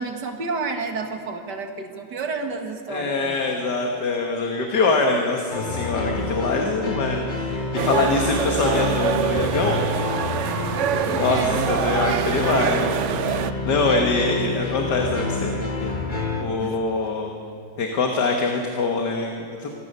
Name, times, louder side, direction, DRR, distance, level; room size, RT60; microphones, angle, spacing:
voice 1, 0.0-3.4 11.0-11.8 13.7-14.2 16.4-17.1, right 4 dB, 85° right, 5 dB, 2.4 m, -31 dB
voice 2, 2.9-9.8 11.1-13.0 13.7-17.3 17.8-19.7, left 3 dB, 85° left, 2 dB, 2.2 m, -24 dB
sound 1, 5.5-16.4, left 2 dB, 30° left, 1.7 m, -28 dB
sound 2, 7.8-13.5, right 9 dB, 65° right, 0.8 m, -26 dB
25.5 x 16.5 x 6.8 m, 2.5 s
omnidirectional pair, 1.8 m